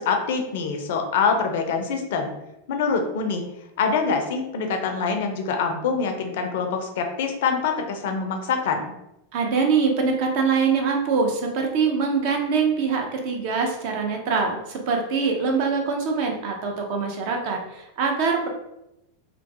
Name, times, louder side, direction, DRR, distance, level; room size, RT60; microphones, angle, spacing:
voice 1, 0.0-2.3 2.7-3.5 3.8-8.9, left 5 dB, 55° left, 4 dB, 0.4 m, -25 dB
voice 2, 9.3-18.5, right 5 dB, 45° right, 2 dB, 0.5 m, -23 dB
2.3 x 2.2 x 2.6 m, 0.88 s
figure-of-eight pair, 90°, 0 cm